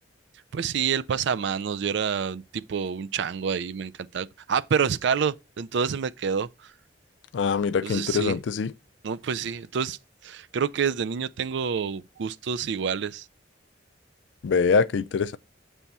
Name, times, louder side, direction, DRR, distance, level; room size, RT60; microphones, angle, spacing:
voice 1, 0.5-6.5 7.8-8.4 9.0-13.3, right 6 dB, 65° right, 0.4 m, -28 dB
voice 2, 7.3-8.7 14.4-15.4, left 5 dB, 70° left, 0.4 m, -24 dB
7.2 x 3.4 x 4.1 m
head